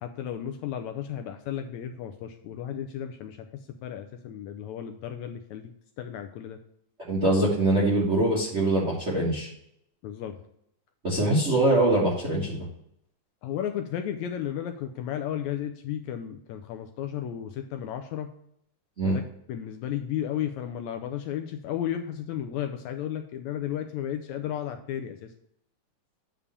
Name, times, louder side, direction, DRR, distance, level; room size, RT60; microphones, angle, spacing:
voice 1, 0.0-3.4 3.8-5.7 6.0-6.6 10.0-10.3 13.4-18.3 19.0-19.2 19.5-25.3, left 10 dB, 75° left, 6 dB, 1.8 m, -33 dB
voice 2, 7.1-9.5 11.0-12.6 19.0-19.2, right 1 dB, 35° right, -5 dB, 1.1 m, -23 dB
8.2 x 3.7 x 6.8 m, 0.73 s
omnidirectional pair, 3.6 m